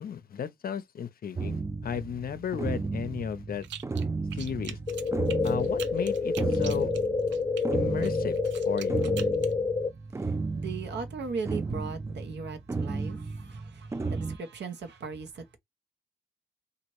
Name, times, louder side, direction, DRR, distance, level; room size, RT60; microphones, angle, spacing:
voice 1, 0.0-3.6 4.4-4.8 5.4-6.9 7.7-8.4 8.6-9.0, left 8 dB, 55° left, 0.6 m, -34 dB
sound 1, 1.3-14.4, right 3 dB, 15° right, 0.3 m, -34 dB
sound 2, 3.6-4.1 4.3-7.6 8.0-9.5, right 10 dB, 90° right, 0.5 m, -43 dB
sound 3, 4.9-9.9, left 4 dB, 15° left, 0.7 m, -28 dB
voice 2, 10.5-15.6, right 5 dB, 70° right, 0.9 m, -38 dB
2.9 x 2.5 x 3.0 m
cardioid pair, 65°, 18 cm